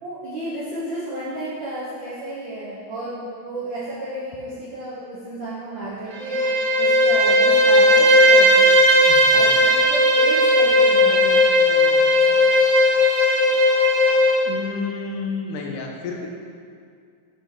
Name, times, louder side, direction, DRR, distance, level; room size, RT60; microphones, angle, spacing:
voice 1, 0.0-6.5 6.8-8.8 9.3-12.5, right 1 dB, 85° right, -8 dB, 1.0 m, -32 dB
Bowed string instrument, 6.1-14.4, left 1 dB, 60° right, 2.6 m, -16 dB
voice 2, 9.1-9.5 14.5-16.3, left 4 dB, 75° left, 1 dB, 2.2 m, -30 dB
7.6 x 6.6 x 3.8 m, 2.3 s
omnidirectional pair, 3.9 m